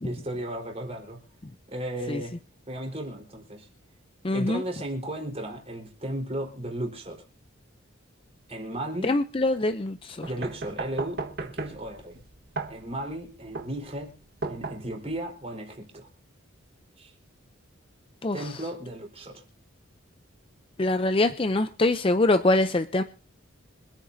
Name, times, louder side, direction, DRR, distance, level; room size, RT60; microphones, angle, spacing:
voice 1, 0.0-1.2 1.7-2.3 2.7-3.7 4.3-7.2 8.5-9.2 10.2-12.2 12.7-14.2 14.5-16.1 17.0-17.1 18.3-19.4, right 1 dB, 30° right, 1 dB, 4.2 m, -35 dB
voice 2, 4.2-4.6 9.0-10.3 18.2-18.4 20.8-23.0, left 2 dB, 25° left, 9 dB, 0.5 m, -24 dB
sound 1, 10.2-15.2, right 3 dB, 50° right, 1.5 m, -36 dB
26.0 x 9.0 x 2.7 m, 0.37 s
head